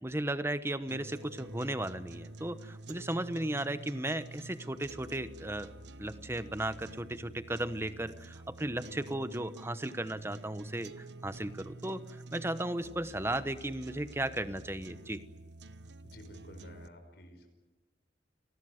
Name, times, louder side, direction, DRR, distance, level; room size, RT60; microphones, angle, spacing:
voice 1, 0.0-5.7 6.0-12.0 12.3-15.2, right 1 dB, 15° right, 12 dB, 1.0 m, -35 dB
sound 1, 0.9-16.9, right 2 dB, 75° right, 1.0 m, -49 dB
voice 2, 16.0-17.5, equal, 65° left, 5 dB, 5.2 m, -51 dB
30.0 x 20.0 x 7.9 m, 1.1 s
head